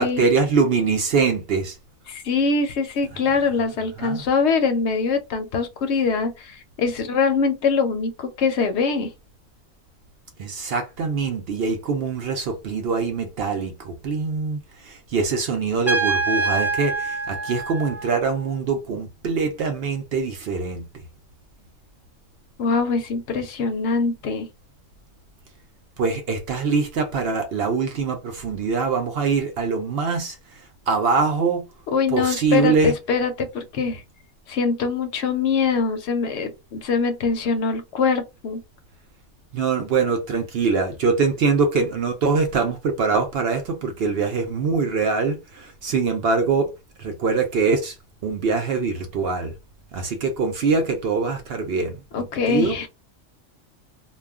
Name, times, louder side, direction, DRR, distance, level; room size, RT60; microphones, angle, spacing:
voice 1, 0.0-1.8 4.0-4.2 10.4-20.8 26.0-30.4 30.9-31.6 32.1-32.9 39.5-46.7 47.0-47.9 48.2-49.5 49.9-52.8, right 4 dB, 60° right, 0.7 m, -23 dB
voice 2, 2.1-9.1 22.6-24.5 31.9-34.0 34.5-38.6 52.1-52.9, left 5 dB, 65° left, 0.8 m, -23 dB
Trumpet, 15.9-18.5, right 3 dB, ahead, 0.6 m, -25 dB
2.3 x 2.1 x 3.4 m
omnidirectional pair, 1.3 m